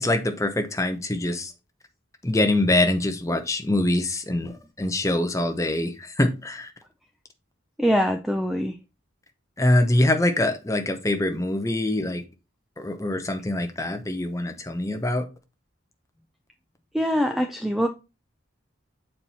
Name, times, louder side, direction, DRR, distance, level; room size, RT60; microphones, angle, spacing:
voice 1, 0.0-1.5 2.2-4.5 4.8-5.9 6.2-6.7 9.6-12.2 12.8-15.2, left 1 dB, 15° left, 0.7 m, -24 dB
voice 2, 7.8-8.8 16.9-17.9, equal, ahead, 0.4 m, -23 dB
7.4 x 4.4 x 4.1 m
head